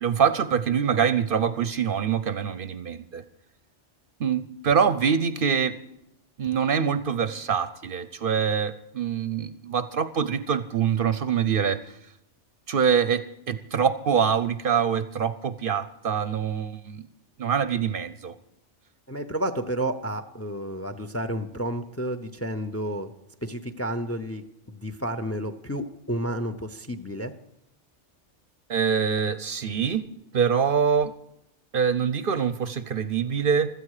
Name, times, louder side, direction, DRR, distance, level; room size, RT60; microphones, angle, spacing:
voice 1, 0.0-3.2 4.2-5.8 6.4-11.8 12.7-17.1 17.4-18.3 28.7-30.0 30.3-31.1 31.7-33.7, right 7 dB, 55° right, 13 dB, 0.8 m, -24 dB
voice 2, 19.1-23.1 23.4-27.3, right 1 dB, 15° left, 10 dB, 0.6 m, -31 dB
16.0 x 13.0 x 4.8 m, 0.83 s
omnidirectional pair, 1.2 m